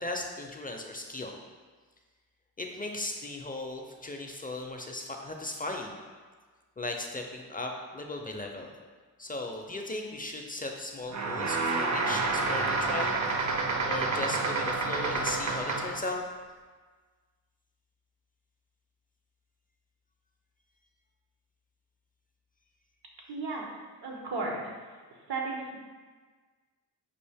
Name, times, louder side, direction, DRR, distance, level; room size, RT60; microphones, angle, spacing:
voice 1, 0.0-1.3 2.6-5.9 6.8-8.7 9.2-13.6 13.8-16.2, left 2 dB, 25° left, 2 dB, 0.4 m, -37 dB
sound 1, 11.1-16.1, right 3 dB, 45° right, 0.6 m, -29 dB
voice 2, 23.3-23.7 24.0-24.7 25.1-25.8, right 3 dB, 80° right, 0 dB, 0.9 m, -34 dB
5.4 x 2.4 x 3.4 m, 1.4 s
cardioid pair, 70°, 39 cm